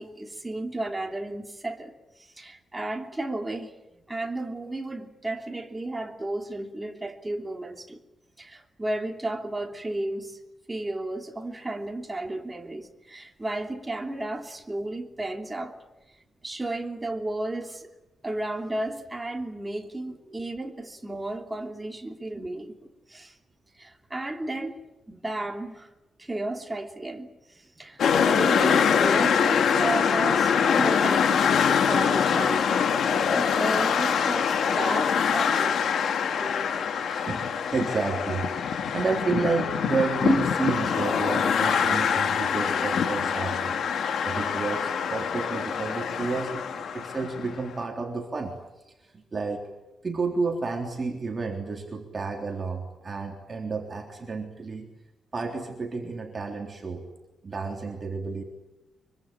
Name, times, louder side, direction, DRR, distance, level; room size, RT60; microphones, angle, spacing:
voice 1, 0.0-3.7 4.1-8.0 8.4-10.4 10.7-15.8 16.4-17.9 18.2-23.3 23.8-24.8 25.1-25.9 26.2-27.3 27.5-32.9 33.3-35.8, right 2 dB, 15° right, 4 dB, 3.0 m, -33 dB
sound 1, 28.0-47.6, left 7 dB, 70° left, 2.5 m, -24 dB
voice 2, 36.4-36.8 37.1-43.8 44.3-49.6 50.0-54.9 55.3-57.0 57.4-58.4, right 4 dB, 30° right, 2 dB, 3.6 m, -31 dB
25.0 x 24.0 x 9.0 m, 1.0 s
wide cardioid pair, 145°, 0 cm